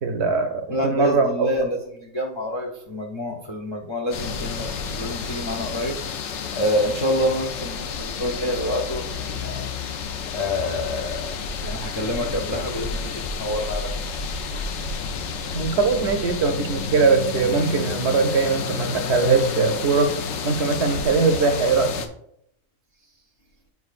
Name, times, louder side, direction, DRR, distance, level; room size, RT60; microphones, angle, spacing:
voice 1, 0.0-1.5 15.5-20.1 20.4-21.9, right 4 dB, 65° right, 7 dB, 0.9 m, -21 dB
voice 2, 0.7-6.0 6.5-9.7 10.3-14.2, left 1 dB, 45° left, 1 dB, 0.3 m, -27 dB
sound 1, 4.1-22.1, left 5 dB, 70° left, 0.9 m, -30 dB
9.5 x 4.5 x 2.4 m, 0.74 s
omnidirectional pair, 1.4 m